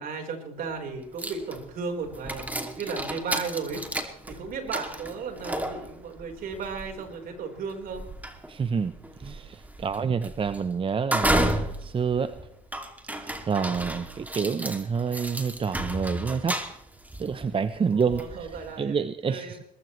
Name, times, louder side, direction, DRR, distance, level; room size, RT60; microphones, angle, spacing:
voice 1, 0.0-8.0 17.9-19.5, right 5 dB, 55° right, 3 dB, 4.5 m, -35 dB
sound 1, 0.7-0.8 1.2-18.8, right 1 dB, 10° right, 2.6 m, -33 dB
voice 2, 8.5-12.3 13.2-16.6 17.2-19.6, right 6 dB, 30° right, 12 dB, 0.9 m, -28 dB
23.0 x 19.5 x 3.3 m, 0.74 s
hypercardioid pair, 65°, 17 cm